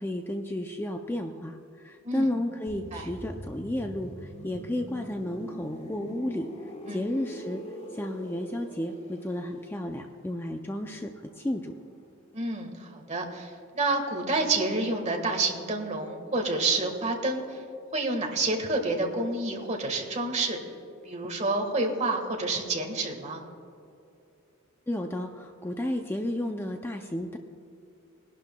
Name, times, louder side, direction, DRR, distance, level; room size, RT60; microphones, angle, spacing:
voice 1, 0.0-6.5 6.9-7.6 7.9-11.8 24.9-27.4, left 1 dB, 10° left, 4 dB, 0.4 m, -32 dB
sound 1, 2.7-12.3 12.6-12.8, equal, 30° left, 1.3 m, -44 dB
voice 2, 12.3-17.6 17.9-20.6 21.0-23.4, right 2 dB, 35° right, 2 dB, 1.4 m, -29 dB
21.5 x 11.5 x 2.2 m, 2.7 s
head